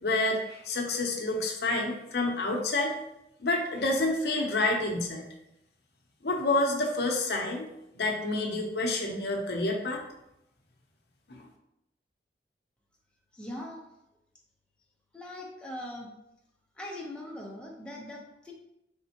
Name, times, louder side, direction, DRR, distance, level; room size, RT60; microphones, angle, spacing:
voice 1, 0.0-3.0 3.4-5.2 6.2-7.7 7.9-10.0, left 2 dB, 65° left, 1 dB, 0.7 m, -28 dB
voice 2, 13.3-13.8 15.1-16.1 16.8-18.5, left 1 dB, 5° left, -2 dB, 0.7 m, -41 dB
4.2 x 3.5 x 2.8 m, 0.84 s
head